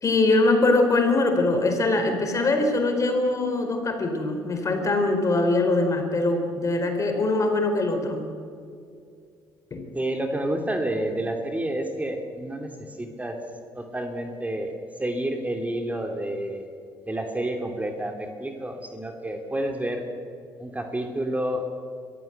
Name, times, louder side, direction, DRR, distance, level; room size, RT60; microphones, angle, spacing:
voice 1, 0.0-8.2 9.7-9.9, left 2 dB, 40° left, 5 dB, 4.4 m, -22 dB
voice 2, 9.9-13.4 13.7-14.7 15.0-16.7 17.1-20.0 20.6-21.7, right 1 dB, 15° right, 4 dB, 2.7 m, -29 dB
22.5 x 14.5 x 8.1 m, 2.3 s
supercardioid pair, 70°, 9 cm